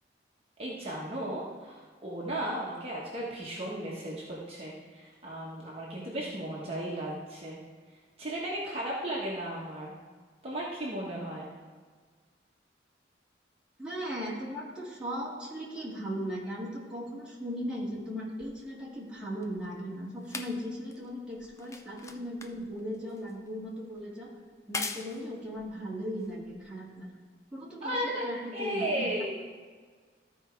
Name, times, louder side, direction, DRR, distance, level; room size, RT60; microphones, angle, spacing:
voice 1, 0.6-7.6 8.2-9.9 10.4-11.5 27.8-29.4, right 1 dB, 35° right, -5 dB, 1.3 m, -35 dB
voice 2, 13.8-24.3 24.7-27.1 27.5-29.5, equal, 5° right, -7 dB, 2.2 m, -38 dB
sound 1, 18.4-27.0 27.9-28.0, left 3 dB, 15° left, 0.5 m, -43 dB
13.5 x 4.8 x 4.6 m, 1.5 s
head